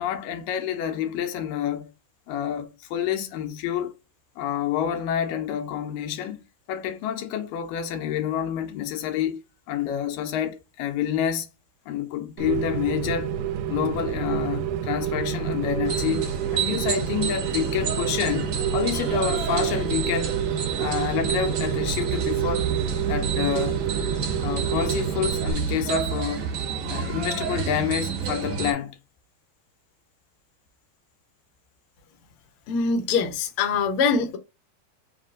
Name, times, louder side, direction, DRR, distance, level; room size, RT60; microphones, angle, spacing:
voice 1, 0.0-1.9 2.3-3.9 4.4-6.4 6.7-9.4 9.7-11.5 11.9-13.3 13.7-20.4 20.8-22.7 23.1-23.8 24.4-26.5 26.9-29.0, left 9 dB, 85° left, 2.5 m, -28 dB
Rain, 12.4-25.5, right 9 dB, 80° right, 2.0 m, -28 dB
sound 1, 15.8-28.7, right 6 dB, 55° right, 1.9 m, -30 dB
voice 2, 32.7-34.4, left 5 dB, 70° left, 1.3 m, -23 dB
5.4 x 2.4 x 3.7 m
omnidirectional pair, 3.9 m